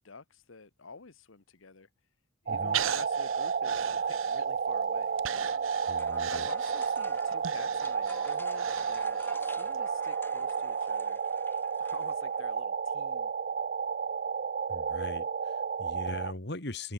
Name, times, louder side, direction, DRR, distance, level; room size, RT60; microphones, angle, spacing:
voice 1, 0.0-1.9 2.4-5.1 6.3-11.2 11.8-13.3, left 4 dB, 75° left, 1.2 m, -49 dB
voice 2, 2.5-2.8 5.9-6.5 14.7-16.9, left 2 dB, 55° left, 2.6 m, -40 dB
sound 1, 2.5-16.3, right 6 dB, 45° right, 0.4 m, -32 dB
Breathing, 2.7-4.7 5.2-9.4 9.7-9.8, right 11 dB, 80° right, 0.9 m, -39 dB
sound 2, 4.9-12.6, left 2 dB, 10° left, 1.9 m, -52 dB
head